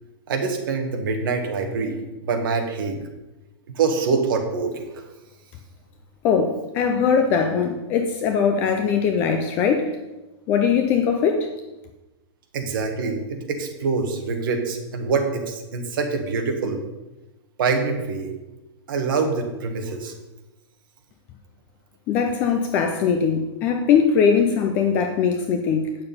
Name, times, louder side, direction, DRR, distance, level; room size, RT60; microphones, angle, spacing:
voice 1, 0.3-2.0 2.2-3.0 3.7-4.9 12.5-16.8 17.6-18.3 18.9-20.1, right 4 dB, 50° right, 4 dB, 1.5 m, -25 dB
voice 2, 6.2-10.0 10.5-11.5 22.1-26.0, left 6 dB, 15° left, 5 dB, 0.3 m, -21 dB
8.7 x 6.8 x 5.4 m, 1.0 s
supercardioid pair, 180°, 15 cm